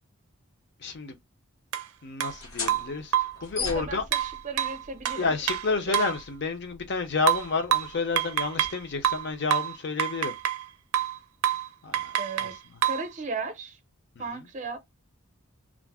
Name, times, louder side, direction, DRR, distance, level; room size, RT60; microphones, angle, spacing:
voice 1, 0.8-1.2 2.0-4.0 5.1-10.4 11.8-12.1 12.4-12.5, left 4 dB, 55° left, 0.6 m, -30 dB
sound 1, 1.7-1.9 2.2-2.3 2.7-3.4 4.1-6.2 7.3-8.8 9.0-10.7 10.9-11.2 11.4-11.7 11.9-13.1, right 11 dB, 85° right, 0.4 m, -27 dB
sound 2, 2.3-9.5, left 4 dB, 75° left, 1.1 m, -41 dB
voice 2, 3.6-5.3 5.9-6.1 12.2-12.6 12.8-13.8 14.2-14.8, right 3 dB, 35° right, 0.6 m, -36 dB
2.5 x 2.0 x 3.3 m
head